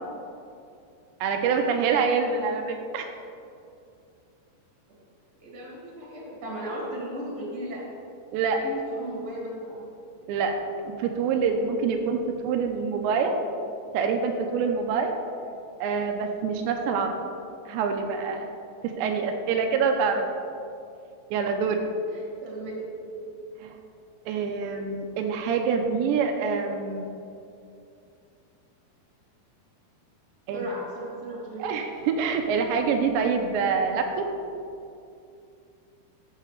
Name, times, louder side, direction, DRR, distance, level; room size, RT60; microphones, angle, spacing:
voice 1, 1.2-3.1 8.3-8.6 10.3-10.6 10.8-13.4 13.9-15.2 15.8-17.1 17.7-18.5 18.8-20.3 21.3-21.8 23.6-23.8 24.3-27.0 30.5-30.7 31.6-34.3, right 5 dB, 85° right, 4 dB, 2.8 m, -26 dB
voice 2, 5.4-7.8 8.6-9.8 22.4-22.7 23.0-23.2 30.5-31.6, equal, 30° right, -5 dB, 2.2 m, -36 dB
13.0 x 7.5 x 3.3 m, 2.5 s
omnidirectional pair, 5.1 m